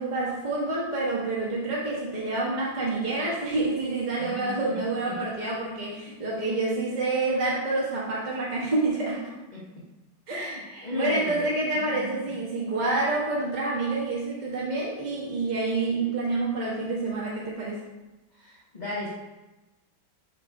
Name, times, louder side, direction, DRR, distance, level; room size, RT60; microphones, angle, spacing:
voice 1, 0.0-9.2 10.3-17.8, right 2 dB, 30° right, -6 dB, 0.8 m, -28 dB
voice 2, 4.2-4.8 5.0-5.2 9.5-9.6 10.3-11.5 11.8-12.4 18.3-19.1, left 1 dB, 35° left, -7 dB, 0.7 m, -36 dB
5.8 x 3.8 x 4.6 m, 1.1 s
omnidirectional pair, 2.2 m